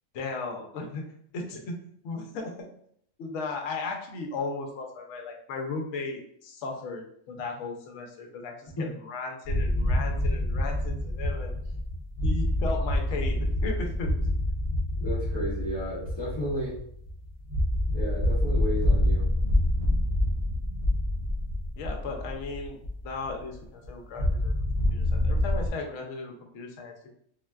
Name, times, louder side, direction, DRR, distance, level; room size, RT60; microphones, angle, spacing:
voice 1, 0.1-1.0 1.3-1.7 2.0-2.7 3.2-11.5 12.2-14.3 21.8-22.8 23.0-24.5 24.9-27.1, left 3 dB, 75° left, 2 dB, 0.9 m, -36 dB
sound 1, 9.4-23.6 23.8-23.9 24.2-25.7, left 1 dB, 35° right, 0.7 m, -27 dB
voice 2, 15.0-16.7 17.9-19.3, equal, 30° left, -9 dB, 0.5 m, -33 dB
3.8 x 2.1 x 2.3 m, 0.67 s
omnidirectional pair, 1.4 m